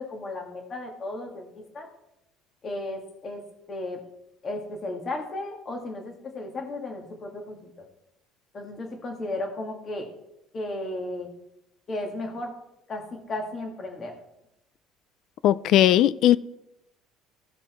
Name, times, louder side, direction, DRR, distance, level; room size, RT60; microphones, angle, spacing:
voice 1, 0.0-1.9 2.6-4.0 4.4-7.7 8.5-10.1 10.5-11.3 11.9-12.5 12.9-14.2, left 2 dB, 30° left, 1.9 m, -34 dB
voice 2, 15.4-16.4, left 12 dB, 60° left, 0.3 m, -18 dB
15.5 x 5.2 x 4.4 m
cardioid pair, 130°, 0 cm